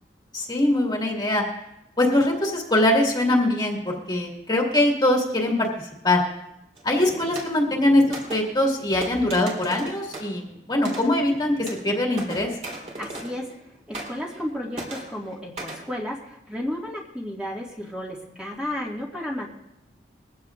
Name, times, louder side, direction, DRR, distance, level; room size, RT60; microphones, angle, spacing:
voice 1, 0.3-1.4 2.0-5.7 6.0-6.2 6.8-12.6, left 1 dB, 25° left, -1 dB, 2.1 m, -22 dB
sound 1, 6.8-13.6 13.9-14.5 14.7-15.9, right 1 dB, 40° right, 4.0 m, -38 dB
voice 2, 13.0-13.5 13.9-19.5, left 1 dB, 5° right, -4 dB, 1.9 m, -33 dB
22.0 x 15.5 x 2.5 m, 0.87 s
head